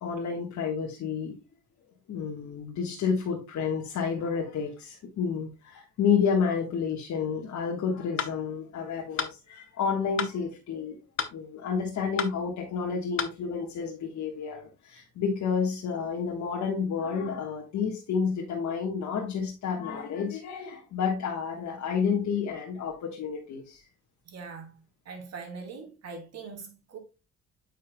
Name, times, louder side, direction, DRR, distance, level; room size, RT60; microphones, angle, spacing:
voice 1, 0.0-1.3 2.1-11.0 11.3-23.8, left 6 dB, 70° left, 1.4 m, -30 dB
sound 1, 8.2-8.4 9.2-9.4 10.2-10.4 11.2-11.4 12.2-12.3 13.2-13.4, left 7 dB, 45° left, 1.0 m, -30 dB
voice 2, 24.3-24.7 25.1-27.0, right 4 dB, 60° right, 2.6 m, -42 dB
8.7 x 5.5 x 2.2 m
cardioid pair, 90°, 30 cm